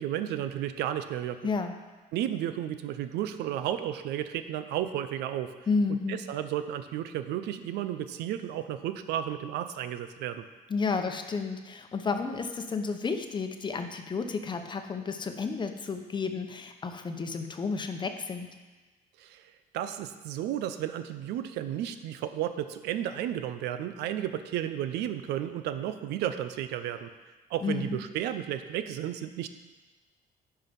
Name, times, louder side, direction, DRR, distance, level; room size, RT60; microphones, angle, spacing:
voice 1, 0.0-1.4 2.1-5.5 6.1-10.4 19.2-19.5 19.7-27.1 27.5-29.5, right 11 dB, 80° right, 10 dB, 0.6 m, -33 dB
voice 2, 1.4-1.7 5.7-6.2 10.7-18.5 27.6-28.0, left 4 dB, 25° left, 6 dB, 0.8 m, -31 dB
11.0 x 4.6 x 5.3 m, 1.2 s
cardioid pair, 110°, 17 cm